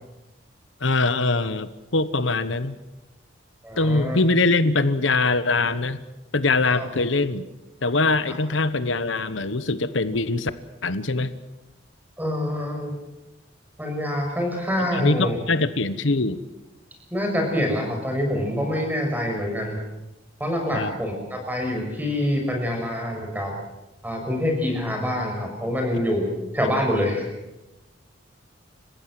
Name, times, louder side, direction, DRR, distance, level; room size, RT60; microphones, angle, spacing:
voice 1, 0.8-2.8 3.8-6.0 6.3-7.4 7.8-10.5 10.8-11.3 14.8-16.4 20.7-20.9, left 3 dB, 75° left, 14 dB, 1.1 m, -23 dB
voice 2, 3.6-4.2 6.8-6.9 12.2-12.9 13.8-15.4 17.1-19.8 20.4-23.5 24.0-27.3, left 1 dB, 10° right, 2 dB, 6.2 m, -26 dB
29.5 x 16.0 x 7.7 m, 1.0 s
head